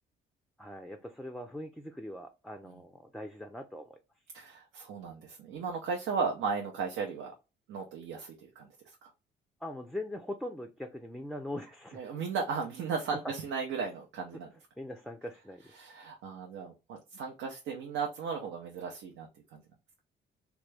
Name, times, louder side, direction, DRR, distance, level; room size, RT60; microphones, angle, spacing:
voice 1, 0.6-4.0 9.6-12.0 13.1-13.3 14.3-14.4 14.8-15.8, left 1 dB, ahead, 0.4 m, -41 dB
voice 2, 4.3-7.3 7.7-8.7 9.0-9.1 11.9-14.5 15.8-19.6, right 5 dB, 80° right, 0.6 m, -36 dB
3.0 x 2.3 x 3.2 m
cardioid pair, 90°, 20 cm